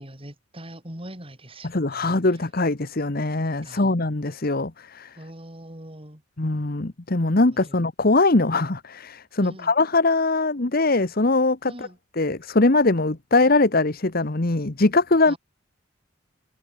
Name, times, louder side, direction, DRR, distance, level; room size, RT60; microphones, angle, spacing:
voice 1, 0.0-2.1 3.7-3.9 5.2-6.2 7.5-7.8 9.4-9.7 11.7-12.0 15.3-15.4, right 1 dB, 25° right, 7.1 m, -41 dB
voice 2, 1.6-5.1 6.4-11.9 12.2-15.3, left 2 dB, 45° left, 1.2 m, -21 dB
head